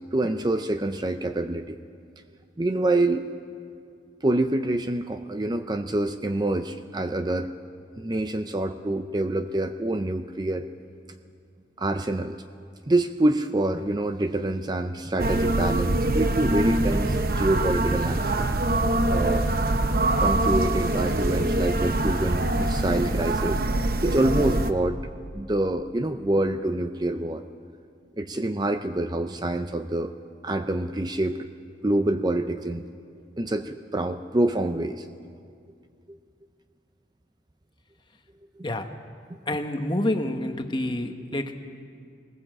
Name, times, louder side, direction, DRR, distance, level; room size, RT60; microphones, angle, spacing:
voice 1, 0.1-1.8 2.6-3.3 4.2-7.5 8.0-10.7 11.8-12.4 12.9-18.5 19.1-19.5 20.2-23.6 24.0-25.0 25.3-27.4 28.2-30.1 30.4-31.4 31.8-32.9 33.4-35.1 38.6-38.7, right 1 dB, 20° right, 8 dB, 0.5 m, -26 dB
sound 1, 15.2-24.7, right 2 dB, 50° right, 0.8 m, -24 dB
voice 2, 39.5-41.6, left 1 dB, 25° left, 6 dB, 1.1 m, -28 dB
20.0 x 18.0 x 7.6 m, 2.3 s
head